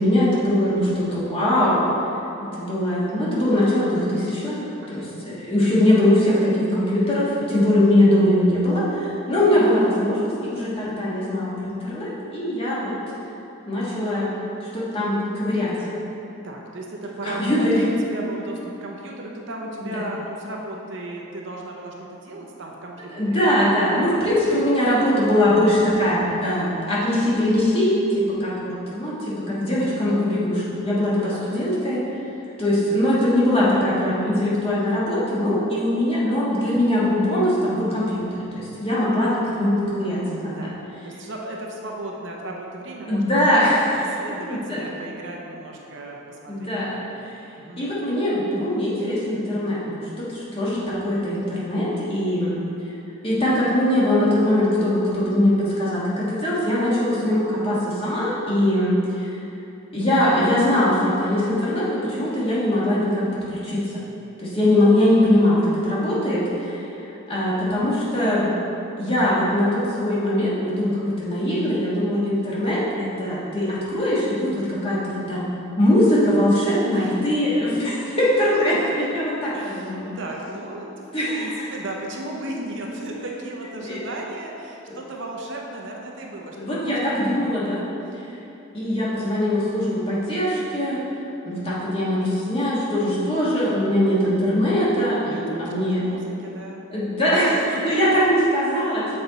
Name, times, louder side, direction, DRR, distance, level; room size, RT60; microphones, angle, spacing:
voice 1, 0.0-1.9 2.5-4.6 4.9-12.9 13.7-14.3 14.7-15.9 17.2-17.8 19.9-20.0 23.1-27.9 28.4-32.0 32.6-38.3 38.5-40.7 43.1-43.9 44.5-44.8 46.5-47.0 47.8-52.6 53.2-55.5 55.8-59.0 59.9-63.2 63.5-63.8 64.4-66.8 67.3-68.5 69.0-75.5 75.8-80.1 81.1-81.7 83.8-84.0 84.9-85.0 86.6-87.8 88.7-91.0 91.4-96.0 96.9-99.0, left 1 dB, 25° left, -8 dB, 1.4 m, -21 dB
voice 2, 4.8-5.3 16.4-23.5 31.2-31.9 40.6-40.7 41.0-47.3 47.6-47.9 76.9-77.5 79.5-81.0 81.3-87.6 95.2-96.9, right 1 dB, 55° right, -1 dB, 0.7 m, -36 dB
7.0 x 4.3 x 3.9 m, 2.9 s
head